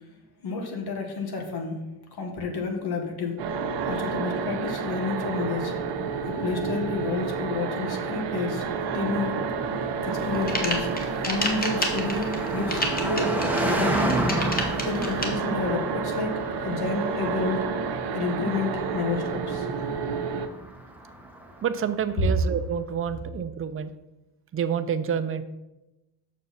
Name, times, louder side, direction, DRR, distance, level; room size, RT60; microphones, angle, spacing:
voice 1, 0.4-1.8 2.2-3.4 3.9-5.7 6.3-8.7 8.9-9.4 10.0-10.9 11.2-14.2 14.8-17.7 18.1-19.7, left 4 dB, 65° left, 3 dB, 1.6 m, -30 dB
sound 1, 3.4-20.5, right 5 dB, 80° right, 0.8 m, -30 dB
Car passing by, 5.6-22.0, right 1 dB, 5° right, 1.0 m, -33 dB
sound 2, 10.2-15.3, left 1 dB, 20° left, 1.3 m, -29 dB
voice 2, 21.6-23.9 24.5-25.4, right 8 dB, 30° right, 10 dB, 0.5 m, -28 dB
6.7 x 6.3 x 4.1 m, 0.99 s
cardioid pair, 115°, 41 cm